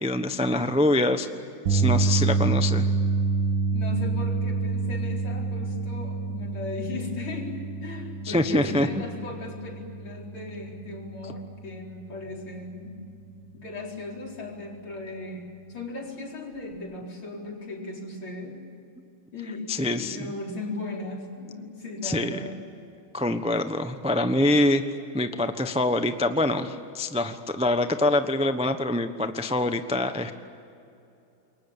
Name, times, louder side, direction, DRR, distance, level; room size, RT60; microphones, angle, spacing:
voice 1, 0.0-1.3 1.7-2.8 8.3-9.0 19.7-20.2 22.0-22.4 23.1-24.8 25.1-30.3, left 1 dB, 5° right, 8 dB, 0.4 m, -25 dB
sound 1, 1.7-13.9 14.2-14.5 16.7-16.8, right 4 dB, 75° right, 2.2 m, -28 dB
voice 2, 3.7-13.0 13.5-18.6 19.3-22.6, left 2 dB, 80° left, -1 dB, 5.2 m, -37 dB
28.0 x 22.5 x 8.9 m, 2.7 s
omnidirectional pair, 2.3 m